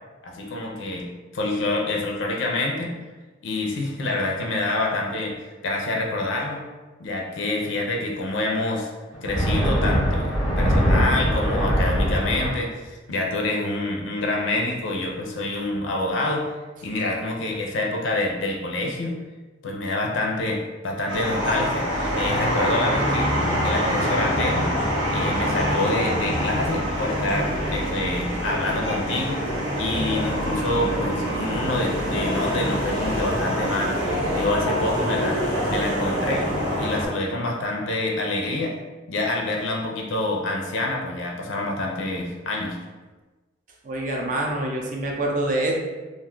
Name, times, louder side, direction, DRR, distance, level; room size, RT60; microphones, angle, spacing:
voice 1, 0.2-2.9 3.4-5.3 5.6-6.6 7.0-8.9 9.2-16.5 16.8-19.2 19.6-21.9 22.2-23.3 23.6-24.7 25.1-29.4 29.8-34.0 34.3-35.4 35.7-38.7 39.1-42.8, left 2 dB, 65° left, 0 dB, 0.5 m, -27 dB
sound 1, 9.1-12.5, equal, 5° right, 0.7 m, -21 dB
sound 2, 21.1-37.1, equal, 75° right, 0.9 m, -25 dB
voice 2, 43.8-45.7, right 1 dB, 40° right, 0 dB, 0.5 m, -25 dB
2.4 x 2.2 x 3.7 m, 1.2 s
head